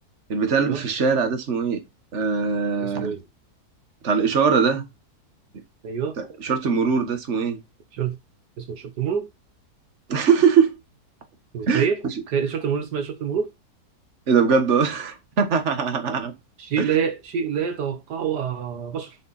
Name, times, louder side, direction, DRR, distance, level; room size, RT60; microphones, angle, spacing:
voice 1, 0.3-1.8 2.1-3.1 4.0-4.8 6.2-7.6 10.1-10.8 11.7-12.1 14.3-16.3 16.8-16.9, right 6 dB, 45° right, 1.8 m, -21 dB
voice 2, 2.8-3.2 5.8-6.2 7.9-8.2 8.6-9.3 11.5-12.0 12.3-13.5 16.6-19.2, right 7 dB, 75° right, 1.7 m, -26 dB
7.0 x 6.0 x 4.1 m
omnidirectional pair, 1.8 m